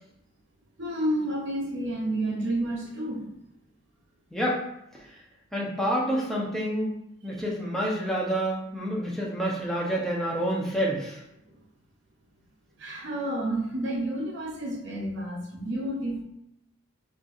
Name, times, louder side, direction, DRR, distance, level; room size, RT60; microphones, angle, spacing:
voice 1, 0.8-3.3 7.3-7.4 11.5-11.6 12.8-16.2, right 1 dB, 60° right, 0 dB, 0.6 m, -30 dB
voice 2, 4.3-4.6 5.5-6.9 7.2-11.2, equal, ahead, -5 dB, 0.7 m, -28 dB
4.3 x 2.5 x 2.4 m, 0.83 s
head